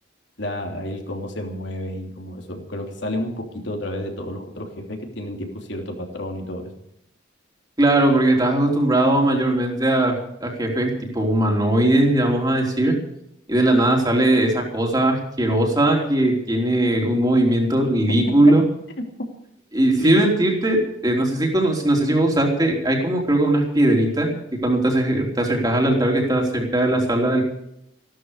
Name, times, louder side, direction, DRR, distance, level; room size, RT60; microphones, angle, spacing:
voice 1, 0.4-6.8 20.0-20.3, left 1 dB, 65° left, 2 dB, 3.1 m, -31 dB
voice 2, 7.8-13.0 13.5-18.6 19.7-24.3 24.6-27.4, right 1 dB, 20° right, 0 dB, 3.5 m, -19 dB
15.0 x 12.5 x 6.7 m, 0.76 s
head